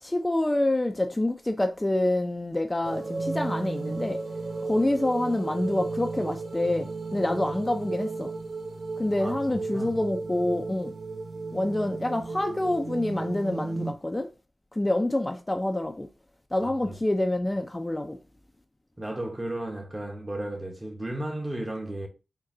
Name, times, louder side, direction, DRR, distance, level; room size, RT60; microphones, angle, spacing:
voice 1, 0.0-4.2 4.6-8.3 9.0-10.9 11.5-14.3 14.8-16.1 16.5-18.2, left 1 dB, 20° left, 0.4 m, -27 dB
sound 1, 2.8-13.9, right 3 dB, 70° right, 0.5 m, -34 dB
voice 2, 9.2-9.9 16.6-17.0 19.0-22.1, right 1 dB, 25° right, 1.0 m, -34 dB
3.8 x 2.2 x 3.7 m
cardioid pair, 50°, 0 cm